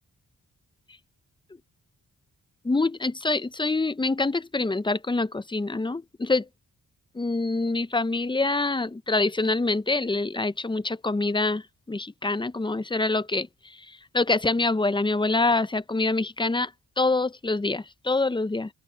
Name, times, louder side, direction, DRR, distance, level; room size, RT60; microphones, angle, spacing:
voice 1, 2.6-6.5 7.2-11.6 11.9-13.5 14.1-16.7 17.0-18.7, left 3 dB, 15° left, 0.4 m, -25 dB
open air
wide cardioid pair, 125°, 35 cm